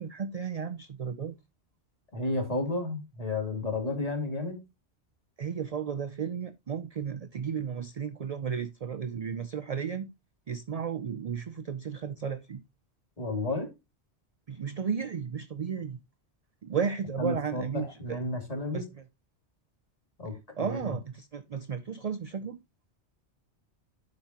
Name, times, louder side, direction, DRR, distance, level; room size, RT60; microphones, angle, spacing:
voice 1, 0.0-1.3 5.4-10.1 10.5-12.6 14.5-16.0 16.6-18.2 18.7-19.0 20.6-22.6, right 7 dB, 50° right, 0.5 m, -34 dB
voice 2, 2.1-4.6 13.2-13.7 17.2-18.9 20.2-20.9, left 2 dB, 35° left, 2.7 m, -32 dB
11.5 x 5.4 x 2.9 m
omnidirectional pair, 1.2 m